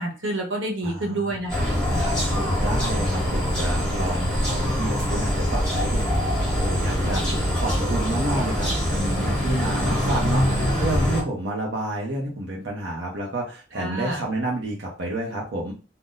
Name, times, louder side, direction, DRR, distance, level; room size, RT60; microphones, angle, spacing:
voice 1, 0.0-2.2 13.8-14.2, right 2 dB, 90° right, 1 dB, 1.0 m, -29 dB
voice 2, 0.8-1.4 1.9-6.2 6.5-15.7, right 1 dB, 65° right, -2 dB, 0.7 m, -30 dB
sound 1, 1.5-11.2, equal, 5° left, 0.9 m, -24 dB
2.6 x 2.1 x 3.9 m, 0.33 s
head